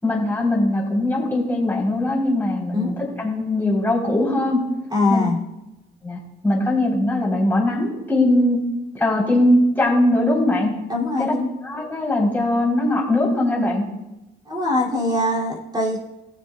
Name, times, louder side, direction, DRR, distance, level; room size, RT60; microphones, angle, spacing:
voice 1, 0.0-4.6 5.1-5.3 6.0-8.6 8.9-10.7 11.2-11.3 11.6-13.8, left 1 dB, 10° left, -4 dB, 3.7 m, -20 dB
voice 2, 4.9-5.4 10.9-11.5 14.5-16.0, left 2 dB, 20° right, -3 dB, 2.7 m, -22 dB
20.0 x 7.0 x 2.3 m, 0.97 s
cardioid pair, 90°, 20 cm